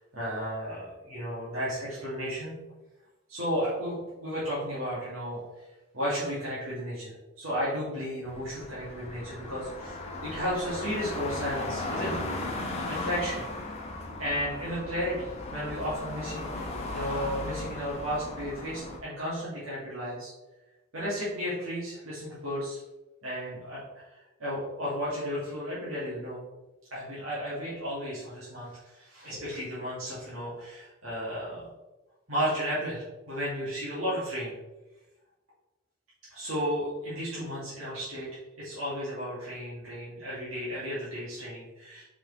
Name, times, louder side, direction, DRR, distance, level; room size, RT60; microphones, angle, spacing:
voice 1, 0.0-2.6 3.3-5.7 5.9-12.2 12.8-13.4 14.2-20.3 20.9-22.8 23.2-26.4 26.9-31.7 32.3-34.6 36.3-42.0, equal, 80° right, -9 dB, 2.2 m, -34 dB
sound 1, 8.2-19.0, left 2 dB, 30° left, 1.3 m, -36 dB
5.2 x 4.9 x 4.0 m, 1.1 s
head